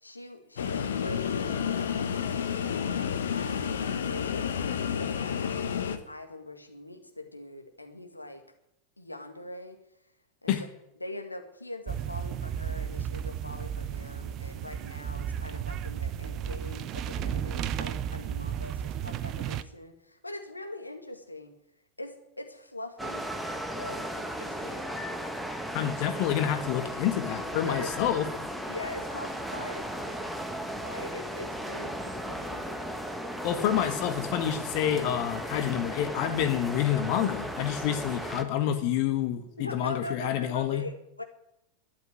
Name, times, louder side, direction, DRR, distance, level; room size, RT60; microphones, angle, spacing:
voice 1, 0.0-3.7 4.0-8.4 9.0-9.8 10.4-10.5 11.0-21.6 22.0-23.3 23.7-24.9 27.6-27.9 28.7-30.3 30.8-32.8 39.6-41.2, left 2 dB, 85° left, 5 dB, 2.1 m, -42 dB
sound 1, 0.6-6.0, left 7 dB, 65° left, 1.4 m, -30 dB
sound 2, 11.9-19.6, right 9 dB, 35° right, 0.8 m, -34 dB
sound 3, 23.0-38.4, equal, ahead, 1.6 m, -36 dB
voice 2, 25.7-28.3 33.4-40.8, left 10 dB, 45° left, 8 dB, 1.5 m, -28 dB
12.5 x 11.0 x 9.7 m, 0.82 s
figure-of-eight pair, 90°, 0 cm